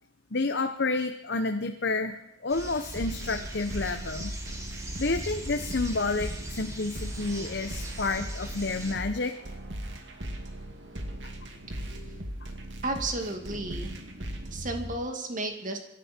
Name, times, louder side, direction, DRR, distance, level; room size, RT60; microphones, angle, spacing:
voice 1, 0.3-4.3 5.0-9.3 11.9-12.2, left 3 dB, 60° left, 7 dB, 0.9 m, -30 dB
sound 1, 2.5-9.0, right 1 dB, 15° right, 2.3 m, -40 dB
sound 2, 3.0-15.0, right 1 dB, 65° right, 2.4 m, -38 dB
voice 2, 12.8-13.9 14.5-15.8, right 2 dB, 45° right, 4 dB, 2.4 m, -33 dB
27.0 x 12.0 x 4.5 m, 0.90 s
head